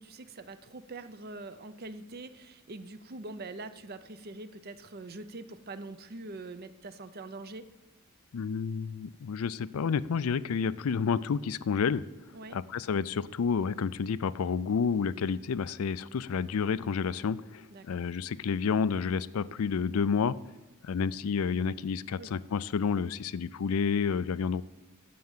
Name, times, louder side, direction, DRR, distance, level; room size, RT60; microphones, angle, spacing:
voice 1, 0.0-7.7 12.3-12.6 17.7-18.0 22.2-22.3, right 2 dB, 45° right, 12 dB, 0.6 m, -44 dB
voice 2, 8.3-12.0 12.5-20.4 20.8-24.6, left 6 dB, 90° left, 18 dB, 0.4 m, -30 dB
9.4 x 7.7 x 7.3 m, 1.1 s
head